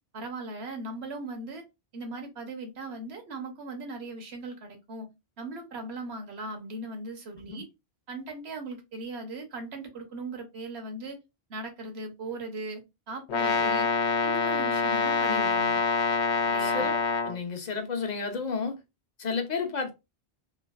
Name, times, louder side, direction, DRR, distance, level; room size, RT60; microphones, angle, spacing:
voice 1, 0.1-1.6 1.9-5.1 5.4-7.7 8.1-11.2 11.5-12.8 13.1-13.9 14.2-15.8 16.5-16.9, right 2 dB, 75° right, 1.1 m, -38 dB
Brass instrument, 13.3-17.4, left 5 dB, 85° left, 0.9 m, -26 dB
voice 2, 16.6-16.9 17.2-18.7 19.2-19.9, left 5 dB, 45° left, 0.7 m, -31 dB
3.1 x 2.4 x 2.3 m
omnidirectional pair, 1.1 m